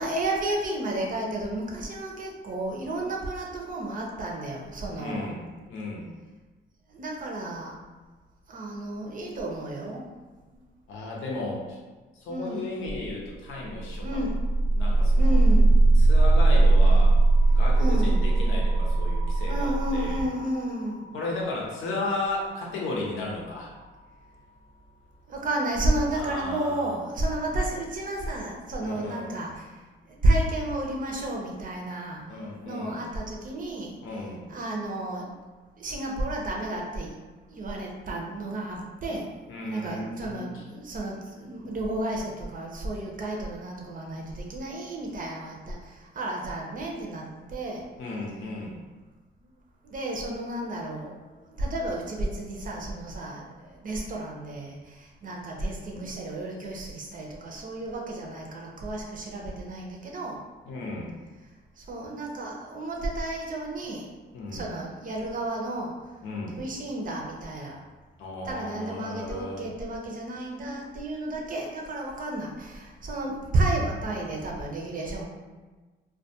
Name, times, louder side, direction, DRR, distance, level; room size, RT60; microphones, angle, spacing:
voice 1, 0.0-5.3 6.9-7.7 8.5-10.0 10.5-10.6 12.3-12.8 14.0-14.4 15.2-15.7 17.8-18.2 19.5-21.1 25.3-29.7 30.1-32.2 32.6-34.0 34.5-35.3 35.8-37.2 37.5-39.3 39.7-47.8 49.8-51.2 51.6-60.4 61.8-64.1 64.5-65.9 66.6-67.8 68.4-75.3, right 1 dB, 45° right, -1 dB, 0.5 m, -31 dB
voice 2, 5.0-5.4 5.7-6.1 10.9-11.8 12.2-14.2 14.7-15.4 15.9-17.2 17.5-20.3 21.1-23.7 26.1-27.0 28.8-29.3 32.3-33.0 34.0-34.4 39.5-40.6 47.8-48.8 55.9-56.0 60.7-61.1 64.3-64.7 66.2-66.6 68.2-69.6, left 2 dB, 85° left, -2 dB, 0.6 m, -35 dB
sound 1, 13.6-23.6, right 2 dB, 35° left, 0.4 m, -21 dB
2.2 x 2.2 x 2.7 m, 1.3 s
cardioid pair, 90°, 20 cm